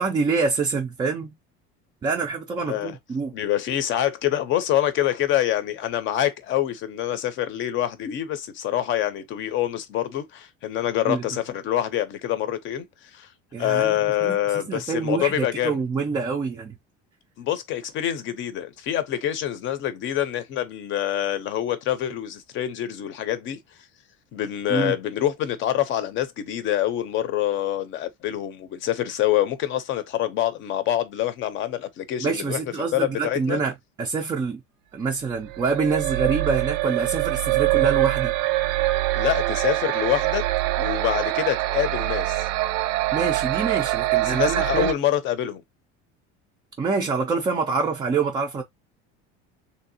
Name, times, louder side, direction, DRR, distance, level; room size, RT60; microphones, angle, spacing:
voice 1, 0.0-1.3 2.0-3.3 11.1-11.2 13.5-16.7 24.7-24.9 32.2-34.6 34.9-38.3 43.1-44.9 46.8-48.6, right 4 dB, 15° right, 0.3 m, -26 dB
voice 2, 2.6-3.0 3.3-12.9 13.1-13.3 13.6-15.8 17.4-23.6 24.3-33.6 39.1-40.5 40.8-42.5 44.2-45.6, left 12 dB, 40° left, 0.6 m, -26 dB
sound 1, 35.5-44.9, right 17 dB, 80° right, 0.5 m, -24 dB
3.4 x 2.7 x 2.7 m
cardioid pair, 165°, 29 cm